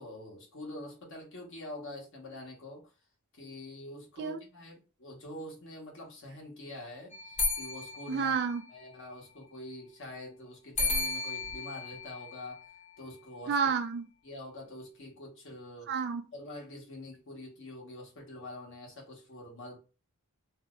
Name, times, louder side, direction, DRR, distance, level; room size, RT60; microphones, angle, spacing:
voice 1, 0.0-2.9 3.3-8.3 8.7-12.6 13.0-13.6 14.2-15.9 16.3-19.8, left 1 dB, 60° left, 1.1 m, -45 dB
sound 1, 7.1-9.1 10.8-13.1, left 3 dB, 30° left, 0.8 m, -35 dB
voice 2, 8.1-8.6 13.5-14.1 15.9-16.3, right 6 dB, 50° right, 0.4 m, -30 dB
2.6 x 2.0 x 3.6 m
head